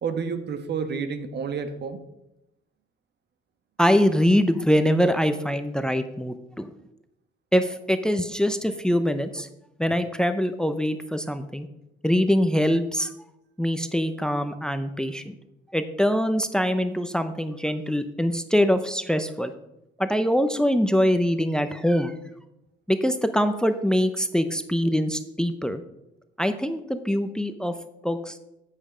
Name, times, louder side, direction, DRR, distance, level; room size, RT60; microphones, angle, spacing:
voice 1, 0.0-2.0, right 6 dB, 60° right, 9 dB, 1.2 m, -30 dB
voice 2, 3.8-6.7 7.5-9.5 9.8-11.7 12.0-13.1 13.6-15.3 15.7-19.5 20.0-22.2 22.9-25.8 26.4-27.8 28.0-28.4, equal, 5° left, 10 dB, 0.7 m, -23 dB
8.8 x 8.6 x 5.1 m, 0.87 s
cardioid pair, 90°, 20 cm